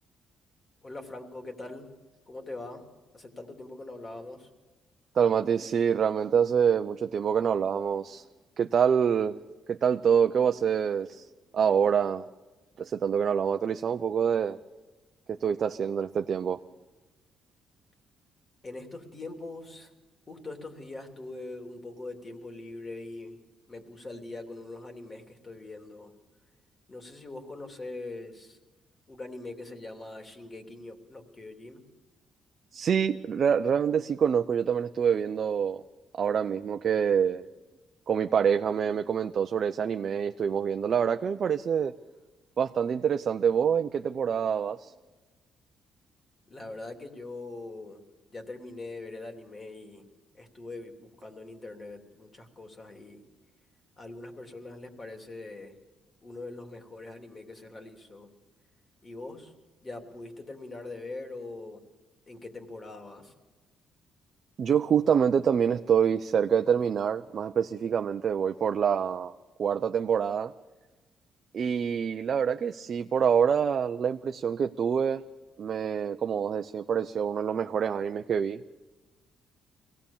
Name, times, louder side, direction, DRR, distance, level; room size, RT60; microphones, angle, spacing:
voice 1, 0.8-1.9 2.3-2.8 3.1-4.5 18.6-19.9 20.3-23.3 23.7-26.1 26.9-28.6 29.1-31.8 46.5-48.0 48.3-50.0 50.3-53.2 54.0-55.8 56.2-58.3 59.0-59.5 59.8-61.8 62.3-63.3, left 2 dB, 30° left, 4 dB, 2.9 m, -42 dB
voice 2, 5.1-8.2 8.6-9.4 9.7-11.2 11.5-12.3 12.8-14.6 15.3-16.6 32.7-35.8 36.1-37.5 38.1-41.9 42.6-44.9 64.6-69.3 69.6-70.5 71.5-75.2 75.6-78.8, right 7 dB, 55° right, 7 dB, 0.6 m, -26 dB
23.0 x 17.5 x 7.2 m, 1.2 s
cardioid pair, 90°, 0 cm